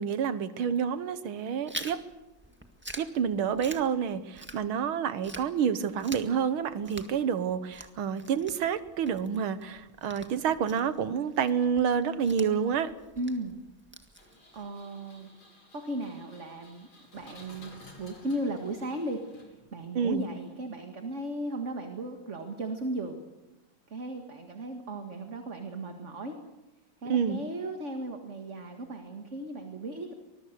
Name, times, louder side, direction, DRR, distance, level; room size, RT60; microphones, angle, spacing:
voice 1, 0.0-2.0 3.0-12.9 20.0-20.3 27.1-27.4, right 7 dB, 85° right, 13 dB, 2.0 m, -28 dB
Chewing mastication, 1.7-4.9 5.2-14.7, right 1 dB, 5° right, 1.6 m, -46 dB
voice 2, 13.2-13.6 14.2-15.3 15.7-16.9 17.1-17.7 18.0-23.2 23.9-26.4 27.0-30.1, right 1 dB, 35° right, 4 dB, 2.1 m, -36 dB
Engine, 14.2-19.9, left 2 dB, 80° left, 5.9 m, -54 dB
24.5 x 22.0 x 6.8 m, 1.0 s
omnidirectional pair, 2.2 m